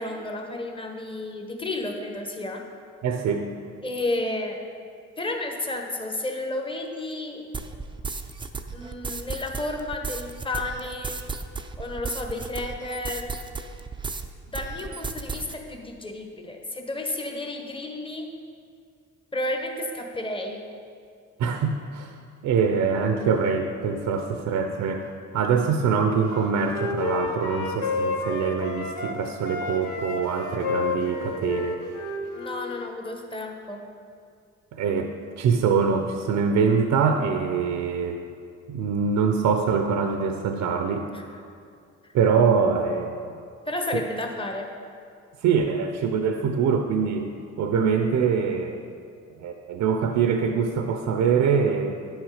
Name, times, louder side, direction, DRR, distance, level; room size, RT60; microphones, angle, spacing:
voice 1, 0.0-2.6 3.8-4.6 5.2-7.4 8.7-11.2 11.8-13.3 14.5-18.3 19.3-20.6 32.3-33.9 41.1-41.2 43.6-44.7, left 2 dB, 15° left, 2 dB, 1.1 m, -32 dB
voice 2, 3.0-3.5 21.4-22.2 22.4-31.8 34.7-38.2 38.7-41.1 42.1-43.3 43.9-44.0 45.4-47.3 47.6-48.8 49.4-52.0, right 6 dB, 75° right, 5 dB, 0.7 m, -24 dB
sound 1, 7.5-14.3 14.5-15.5, right 4 dB, 15° right, 0.5 m, -34 dB
Wind instrument woodwind instrument, 26.3-29.2 29.4-32.9, left 4 dB, 85° left, 1.0 m, -30 dB
10.0 x 6.3 x 4.9 m, 2.3 s
cardioid pair, 90°, 30 cm